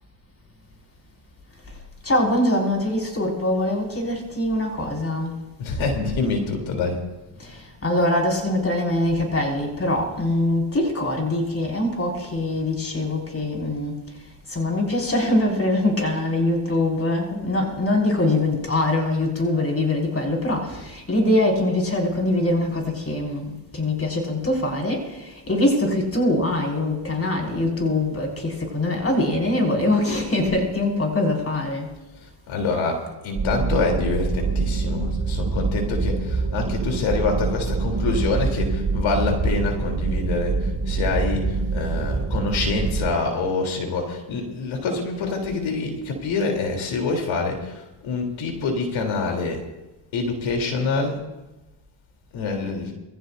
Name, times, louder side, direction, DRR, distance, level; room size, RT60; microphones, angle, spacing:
voice 1, 2.0-5.4 7.4-14.0 14.5-31.9, left 1 dB, 30° left, 5.9 m, -23 dB
voice 2, 5.6-7.0 32.2-49.6 50.1-51.2 52.3-52.9, left 4 dB, 80° left, 3.7 m, -26 dB
sound 1, 33.4-43.1, right 4 dB, 35° right, 5.4 m, -25 dB
23.5 x 16.0 x 2.7 m
supercardioid pair, 70°, 47 cm